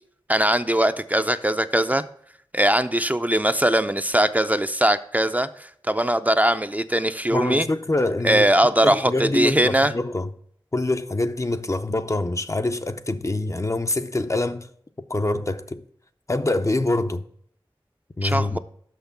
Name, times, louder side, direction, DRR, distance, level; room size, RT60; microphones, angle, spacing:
voice 1, 0.3-2.0 2.5-5.5 5.9-7.7 8.2-9.9 18.2-18.6, right 1 dB, 15° right, 0.4 m, -20 dB
voice 2, 7.3-8.5 8.8-10.3 10.7-14.7 15.0-15.8 16.3-17.3 18.2-18.6, left 2 dB, 35° left, 0.5 m, -25 dB
6.3 x 5.8 x 6.8 m
wide cardioid pair, 50°, 9 cm